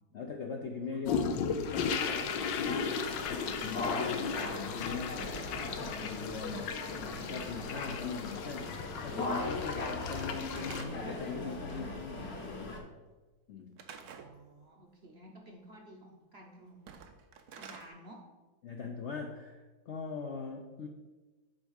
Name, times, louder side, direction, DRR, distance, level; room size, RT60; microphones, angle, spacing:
voice 1, 0.1-2.3 2.6-3.0 3.3-12.9 13.5-13.8 18.6-20.9, left 5 dB, 65° left, 2 dB, 0.7 m, -41 dB
sound 1, 1.0-10.8, left 6 dB, 90° left, 1.4 m, -36 dB
sound 2, 1.6-12.8, left 2 dB, 40° left, 1.1 m, -39 dB
Slam / Wood, 10.0-11.3 13.8-14.3 16.7-17.9, right 7 dB, 65° right, 1.1 m, -49 dB
voice 2, 13.9-16.9 17.6-18.3, right 1 dB, 45° right, 0 dB, 0.9 m, -53 dB
7.9 x 3.5 x 6.4 m, 1.2 s
omnidirectional pair, 1.9 m